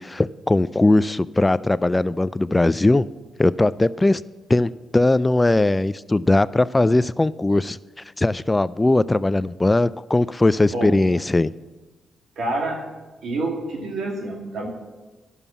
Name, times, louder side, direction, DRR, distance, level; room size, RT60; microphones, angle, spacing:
voice 1, 0.0-3.0 3.4-4.2 4.5-7.8 8.2-11.5, left 2 dB, 20° left, 18 dB, 0.3 m, -19 dB
voice 2, 12.4-12.8 13.2-14.7, right 2 dB, 70° right, 1 dB, 2.3 m, -27 dB
11.0 x 6.8 x 7.2 m, 1.2 s
supercardioid pair, 45°, 0 cm